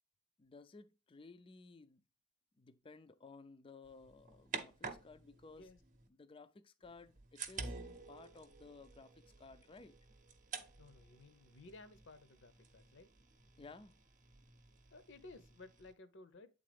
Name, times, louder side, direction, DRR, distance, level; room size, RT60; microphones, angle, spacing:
voice 1, 0.4-2.0 2.6-5.7 6.1-7.7 8.1-10.0 13.6-14.0, left 3 dB, 25° left, 0.4 m, -57 dB
sound 1, 3.8-6.1 6.8-15.9, right 5 dB, 40° right, 0.7 m, -50 dB
voice 2, 10.8-13.1 14.9-16.5, left 2 dB, 60° left, 0.7 m, -57 dB
8.3 x 3.8 x 3.3 m
head